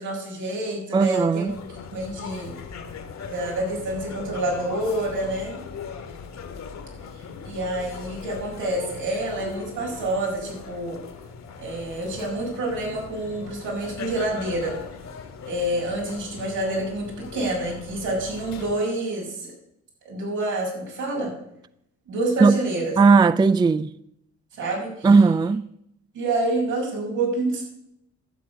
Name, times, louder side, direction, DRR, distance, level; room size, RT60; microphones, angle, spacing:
voice 1, 0.0-1.5 1.9-2.5 3.3-5.6 7.4-11.0 11.6-14.8 15.5-19.5 20.0-21.3 22.1-23.0 24.6-25.1 26.1-27.6, right 2 dB, 80° right, 6.4 m, -27 dB
voice 2, 0.9-1.5 22.4-22.6 23.0-23.9 25.0-25.6, right 4 dB, 15° right, 0.4 m, -17 dB
sound 1, 1.5-18.8, left 6 dB, 60° left, 2.0 m, -39 dB
12.0 x 7.8 x 8.3 m
cardioid pair, 90°, 30 cm